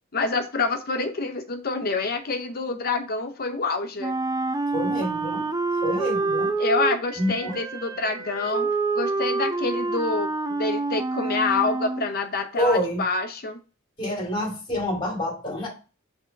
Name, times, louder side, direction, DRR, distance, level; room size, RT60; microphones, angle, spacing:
voice 1, 0.1-4.1 6.6-8.7 8.9-13.6, left 3 dB, 45° left, 7 dB, 0.7 m, -27 dB
Wind instrument woodwind instrument, 4.0-12.1, right 3 dB, 20° right, 0.5 m, -27 dB
voice 2, 4.7-5.5 5.8-6.5 7.2-7.6 12.6-13.0 14.0-15.7, equal, 25° left, 0 dB, 2.2 m, -27 dB
6.0 x 3.6 x 4.5 m, 0.33 s
head